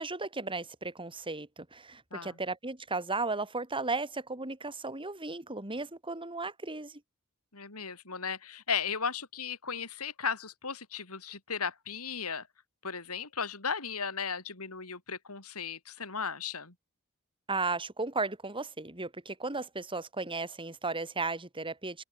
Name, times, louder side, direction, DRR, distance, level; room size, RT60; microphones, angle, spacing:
voice 1, 0.0-7.0 17.5-22.0, right 3 dB, 25° right, 4.8 m, -35 dB
voice 2, 7.5-12.5 12.8-16.7, left 6 dB, 70° left, 4.5 m, -36 dB
head